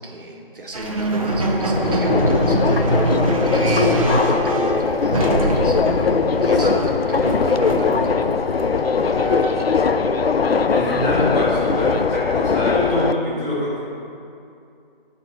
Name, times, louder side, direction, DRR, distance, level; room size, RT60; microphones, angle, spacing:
voice 1, 0.0-5.9 6.4-8.2 8.7-9.9, right 1 dB, 65° right, 0 dB, 1.3 m, -33 dB
sound 1, 0.7-9.8, right 1 dB, 35° right, 0.7 m, -23 dB
Subway metro underground, 1.8-13.1, left 5 dB, 90° left, 0.5 m, -20 dB
voice 2, 3.7-4.2 6.5-6.8 10.7-13.8, left 1 dB, 20° left, -9 dB, 1.6 m, -24 dB
11.5 x 4.4 x 4.4 m, 2.5 s
figure-of-eight pair, 155°, 29 cm